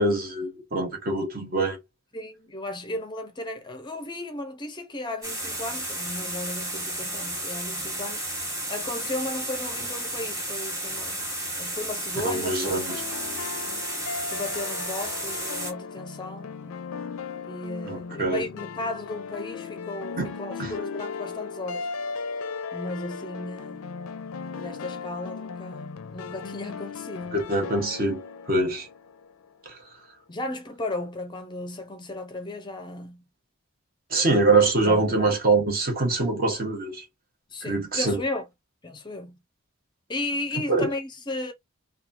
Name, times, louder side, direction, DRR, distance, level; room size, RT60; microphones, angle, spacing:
voice 1, 0.0-1.8 12.1-13.0 17.8-18.4 20.2-20.3 20.6-20.7 27.3-28.2 28.5-28.9 29.7-29.8 34.1-37.0 37.6-38.2 40.5-40.9, right 2 dB, 45° right, 1.0 m, -24 dB
voice 2, 2.1-8.3 8.7-11.3 11.6-12.8 14.3-16.8 17.4-21.9 22.7-23.9 24.6-27.3 30.3-33.2 34.9-35.2 37.5-38.5 38.8-39.4 40.1-41.5, left 2 dB, 20° left, 0.5 m, -35 dB
sound 1, 5.2-15.7, right 1 dB, 15° right, 1.2 m, -32 dB
sound 2, 12.6-29.5, left 5 dB, 90° left, 0.5 m, -37 dB
2.9 x 2.3 x 2.4 m
head